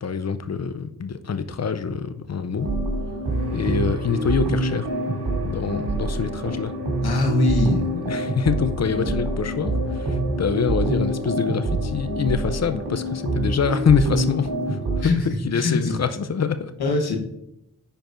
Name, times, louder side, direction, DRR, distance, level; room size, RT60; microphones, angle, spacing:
voice 1, 0.0-2.7 3.5-4.9 5.4-6.7 7.9-9.7 10.0-15.1 15.4-16.7, left 6 dB, 45° left, 11 dB, 0.6 m, -25 dB
sound 1, 2.6-15.0, right 1 dB, 80° right, 1.9 m, -26 dB
voice 2, 7.0-7.8 15.0-16.0 16.8-17.2, left 2 dB, 75° left, 2 dB, 1.2 m, -22 dB
10.5 x 4.6 x 2.6 m, 0.82 s
cardioid pair, 50°, 38 cm